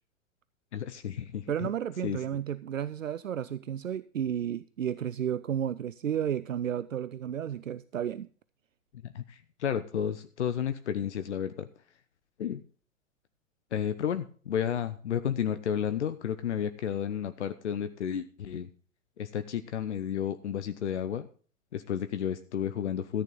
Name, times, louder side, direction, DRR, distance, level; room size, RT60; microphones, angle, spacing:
voice 1, 0.7-1.7 2.0-2.2 9.0-11.7 12.4-12.6 13.7-18.7 19.2-21.3 21.7-23.2, left 9 dB, 60° left, 0.8 m, -32 dB
voice 2, 1.5-8.3, right 9 dB, 80° right, 0.5 m, -32 dB
14.0 x 9.1 x 3.8 m
figure-of-eight pair, 105°, 39 cm